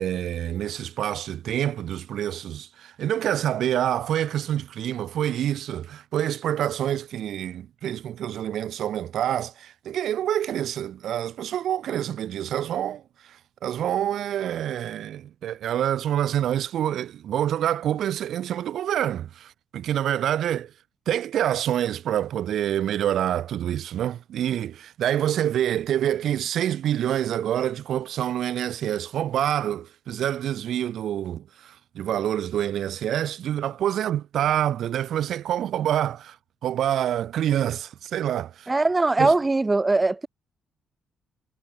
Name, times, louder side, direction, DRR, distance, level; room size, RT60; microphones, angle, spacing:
voice 1, 0.0-13.4 13.6-20.7 21.1-36.4 36.6-38.7 39.2-39.3, right 11 dB, 70° right, 1.8 m, -27 dB
voice 2, 38.7-40.3, right 3 dB, 20° right, 0.9 m, -21 dB
cardioid pair, 90°, 0 cm